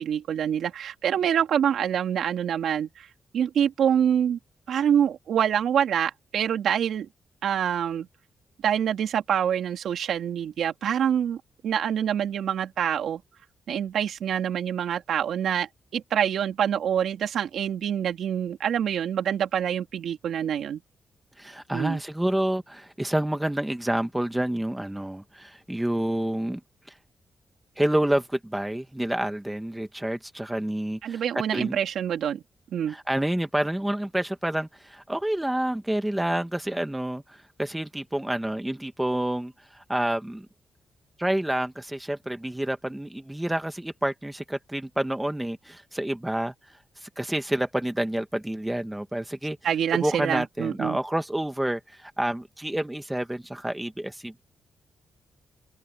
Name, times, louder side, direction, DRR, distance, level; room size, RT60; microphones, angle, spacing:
voice 1, 0.0-3.1 3.3-4.4 4.7-7.1 7.4-8.1 8.6-13.2 13.7-20.8 21.7-22.0 31.0-32.4 32.7-32.9 49.6-51.0, right 9 dB, 80° right, 3.3 m, -26 dB
voice 2, 21.4-26.6 27.8-31.2 31.5-31.8 32.9-40.5 41.2-46.5 47.0-49.6 50.0-54.4, right 1 dB, 5° right, 1.2 m, -28 dB
open air
wide cardioid pair, 170°, 0 cm